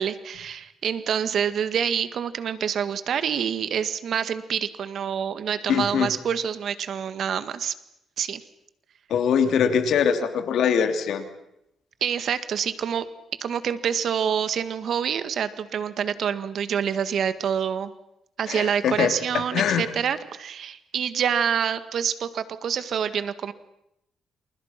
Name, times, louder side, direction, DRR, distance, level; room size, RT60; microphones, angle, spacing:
voice 1, 0.0-7.7 8.2-8.4 12.0-13.1 13.4-17.9 18.4-23.5, right 8 dB, 60° right, 12 dB, 1.8 m, -27 dB
voice 2, 5.7-6.1 9.1-11.2 18.5-19.9, left 7 dB, 70° left, 7 dB, 3.2 m, -23 dB
29.0 x 28.0 x 6.0 m, 0.82 s
cardioid pair, 90°, 0 cm